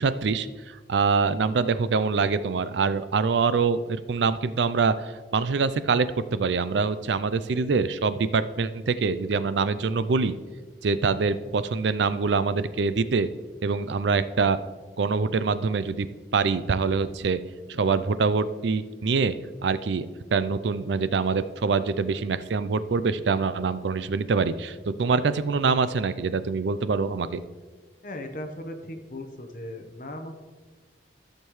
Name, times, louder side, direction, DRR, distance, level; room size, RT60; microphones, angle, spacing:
voice 1, 0.0-6.1 6.3-10.3 10.8-13.3 13.6-14.6 15.0-16.1 16.3-17.4 17.7-19.3 19.6-20.1 20.3-27.4, right 4 dB, 80° right, 14 dB, 0.4 m, -24 dB
voice 2, 28.0-30.3, left 1 dB, 45° left, 5 dB, 1.0 m, -37 dB
13.5 x 6.7 x 3.1 m, 1.4 s
head